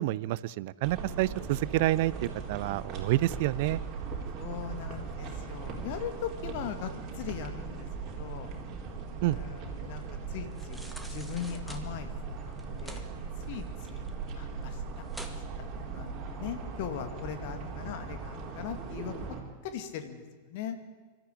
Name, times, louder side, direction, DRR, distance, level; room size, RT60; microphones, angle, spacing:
voice 1, 0.0-3.8 9.2-9.4, right 16 dB, 50° right, 20 dB, 0.5 m, -28 dB
sound 1, 0.8-19.4, right 5 dB, 35° right, 4.0 m, -39 dB
voice 2, 4.3-8.5 9.2-12.4 12.8-13.1 13.4-14.0 14.3-14.8 15.3-15.4 15.9-19.1 19.6-20.8, left 9 dB, 50° left, 8 dB, 2.2 m, -40 dB
sound 2, 10.5-11.8 12.5-13.0 13.4-14.3 14.6-14.7 15.1-15.4 15.9-16.0, right 1 dB, ahead, 2.0 m, -46 dB
24.5 x 13.5 x 8.8 m, 1.5 s
figure-of-eight pair, 90°, 0 cm